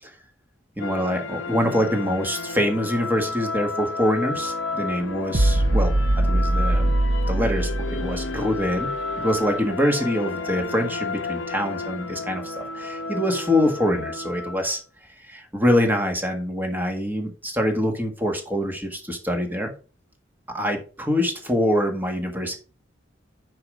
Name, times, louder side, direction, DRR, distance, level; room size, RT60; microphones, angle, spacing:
sound 1, 0.8-14.7, left 3 dB, 90° left, 0.8 m, -32 dB
voice 1, 0.8-6.9 7.3-8.9 9.2-14.8 15.3-19.7 20.5-22.6, equal, 10° right, 4 dB, 1.5 m, -25 dB
sound 2, 5.3-8.8, right 1 dB, 55° right, 0.8 m, -22 dB
6.8 x 5.5 x 4.7 m, 0.36 s
head